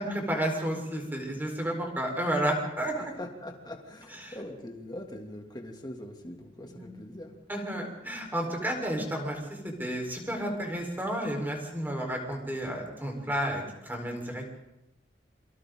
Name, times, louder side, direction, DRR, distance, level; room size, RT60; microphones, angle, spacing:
voice 1, 0.0-3.1 4.1-4.4 6.6-6.9 7.5-14.5, right 1 dB, 10° right, 1 dB, 4.6 m, -32 dB
voice 2, 3.2-7.3, left 1 dB, 20° left, 2 dB, 2.8 m, -42 dB
28.5 x 24.5 x 4.0 m, 0.90 s
head